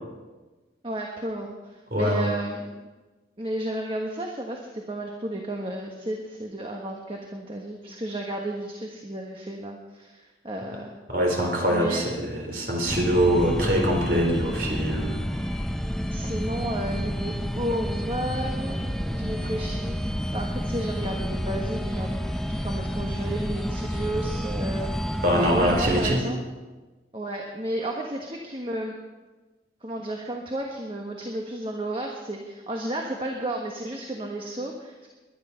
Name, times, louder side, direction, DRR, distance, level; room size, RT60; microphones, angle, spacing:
voice 1, 0.8-2.7 3.4-10.9 11.7-12.1 16.1-26.4 27.1-28.9 29.8-35.1, right 1 dB, 30° right, 1 dB, 1.4 m, -33 dB
voice 2, 1.9-2.3 11.1-15.3 25.2-26.2, equal, 55° right, 1 dB, 4.2 m, -23 dB
sound 1, 12.9-26.1, equal, 5° left, 0.6 m, -30 dB
21.0 x 10.5 x 5.8 m, 1.2 s
head